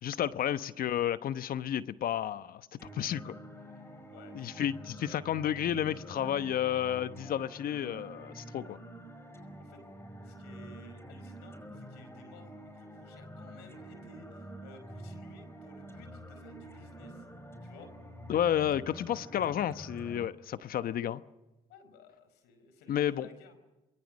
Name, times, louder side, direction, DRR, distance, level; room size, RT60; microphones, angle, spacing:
voice 1, 0.0-2.7 2.9-3.3 4.3-8.8 18.3-21.2 22.9-23.3, left 10 dB, 60° left, 13 dB, 1.1 m, -31 dB
sound 1, 2.8-20.3, right 1 dB, 15° left, 5.2 m, -47 dB
voice 2, 4.1-4.6 6.1-6.2 9.6-9.8 10.2-17.3 17.6-17.9 21.7-23.6, left 4 dB, 80° left, 9 dB, 5.1 m, -55 dB
28.0 x 22.5 x 6.4 m, 1.1 s
supercardioid pair, 65°, 17 cm